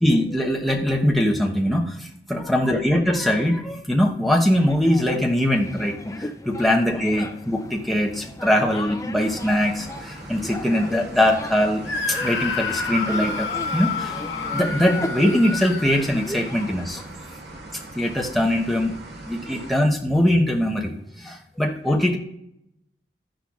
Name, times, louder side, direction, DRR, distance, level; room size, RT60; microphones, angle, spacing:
voice 1, 0.0-11.8 12.1-14.2 14.5-17.0 18.0-18.9 19.2-22.2, left 1 dB, ahead, -1 dB, 0.9 m, -22 dB
sound 1, 4.5-17.0, left 1 dB, 15° left, 0.5 m, -36 dB
sound 2, 9.2-19.8, right 2 dB, 75° right, 1.7 m, -41 dB
Screaming, 11.8-16.7, left 4 dB, 85° left, 1.1 m, -29 dB
12.5 x 10.0 x 2.4 m, 0.80 s
head